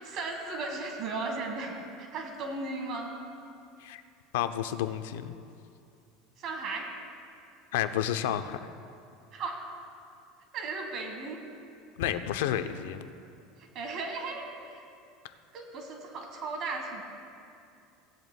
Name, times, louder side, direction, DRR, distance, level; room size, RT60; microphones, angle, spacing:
voice 1, 0.0-3.1 6.4-6.9 9.3-9.6 10.5-11.4 13.7-14.8 15.5-17.0, right 3 dB, 45° right, 3 dB, 1.4 m, -36 dB
voice 2, 4.3-5.3 7.7-8.7 12.0-13.0 15.2-15.3, left 11 dB, 85° left, 10 dB, 0.5 m, -31 dB
17.5 x 10.5 x 2.2 m, 2.5 s
supercardioid pair, 135°, 0 cm